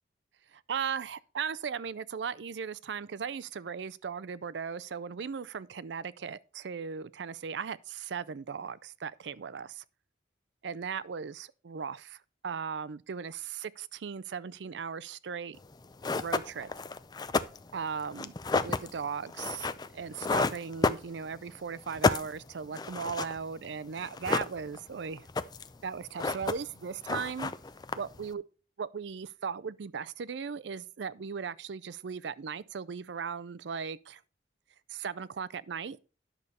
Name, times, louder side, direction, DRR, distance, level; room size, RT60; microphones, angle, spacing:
voice 1, 0.5-9.8 10.6-15.6 16.2-16.7 17.7-18.3 18.6-25.3 25.8-27.5 28.0-28.4 28.8-34.2 34.9-36.0, right 6 dB, 70° right, 0.4 m, -37 dB
sound 1, 15.6-15.7 16.0-21.5 21.8-23.7 24.0-24.9 25.2-25.8 26.0-26.8 27.0-28.3, left 3 dB, 20° left, 0.4 m, -31 dB
10.5 x 6.7 x 4.2 m
head